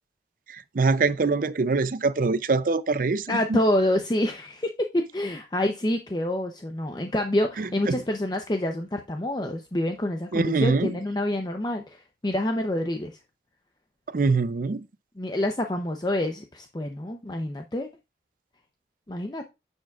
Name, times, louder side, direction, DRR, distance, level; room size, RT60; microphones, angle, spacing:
voice 1, 0.7-3.6 7.6-8.0 10.3-10.9 14.1-14.8, right 4 dB, 50° right, 0.5 m, -24 dB
voice 2, 3.3-13.2 15.2-17.9 19.1-19.5, left 1 dB, 25° left, 0.6 m, -27 dB
10.0 x 7.1 x 2.4 m
head